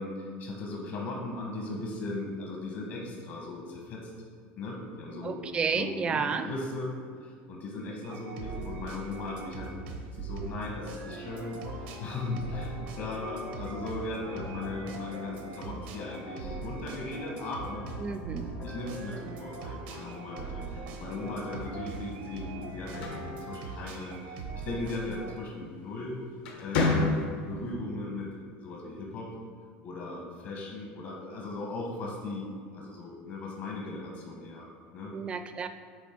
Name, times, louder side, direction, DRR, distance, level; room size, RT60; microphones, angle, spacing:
voice 1, 0.0-4.1 4.6-5.4 5.7-9.7 10.1-17.9 18.6-26.2 26.6-29.3 29.8-35.1, left 2 dB, 55° left, -1 dB, 1.1 m, -38 dB
voice 2, 5.2-6.5 18.0-18.5 35.1-35.7, right 5 dB, 20° right, 9 dB, 0.4 m, -31 dB
sound 1, 8.0-25.4, right 4 dB, 85° right, 0.9 m, -41 dB
sound 2, 11.3-23.7, left 4 dB, 40° left, 0.5 m, -48 dB
sound 3, 22.7-24.3 25.7-26.0 26.4-27.6, left 3 dB, 80° left, 1.1 m, -30 dB
8.6 x 3.3 x 4.4 m, 2.2 s
supercardioid pair, 145°, 5 cm